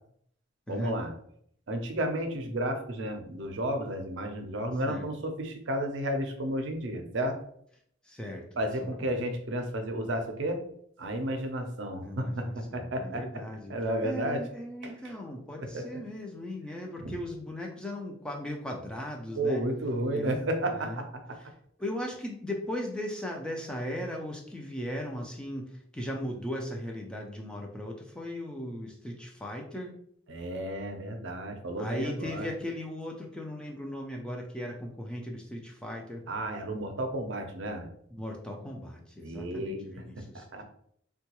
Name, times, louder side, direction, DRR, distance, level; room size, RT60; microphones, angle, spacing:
voice 1, 0.7-1.1 1.7-7.4 8.6-10.6 11.0-13.2 13.7-14.4 14.8-14.9 15.6-16.0 17.0-17.1 19.4-21.4 30.3-32.5 36.3-37.9 39.2-40.0 40.3-40.6, right 1 dB, 65° right, 5 dB, 0.5 m, -32 dB
voice 2, 8.0-9.2 11.9-13.8 14.0-19.6 20.1-20.4 20.7-21.0 21.8-29.9 31.8-36.2 38.1-40.5, left 1 dB, 5° left, 1 dB, 0.3 m, -38 dB
3.7 x 2.2 x 2.9 m, 0.66 s
head